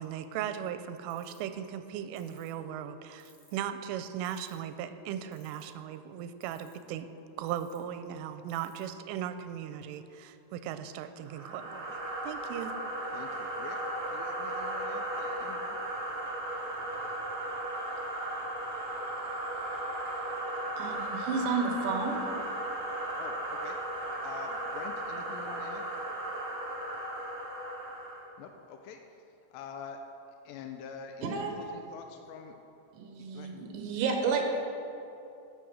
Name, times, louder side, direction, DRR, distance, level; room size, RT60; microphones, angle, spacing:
voice 1, 0.0-7.1 7.4-12.0 12.2-12.8, right 10 dB, 90° right, 10 dB, 3.1 m, -38 dB
sound 1, 1.1-1.5 2.2-2.5 3.2-3.6 4.3-4.7 5.3-5.8 6.4-6.9 7.5-7.8 8.5-8.8, left 5 dB, 50° left, 4.1 m, -61 dB
sound 2, 11.2-28.3, right 1 dB, 50° right, 2.6 m, -36 dB
voice 2, 13.1-15.8 23.2-23.8 24.2-25.8 28.4-29.0 29.5-30.0 30.5-32.6 33.3-33.5, left 6 dB, 90° left, 5 dB, 2.5 m, -46 dB
voice 3, 20.8-22.2 31.2-31.6 32.9-34.5, right 5 dB, 70° right, 3 dB, 3.3 m, -31 dB
13.0 x 8.1 x 6.3 m, 2.8 s
omnidirectional pair, 5.7 m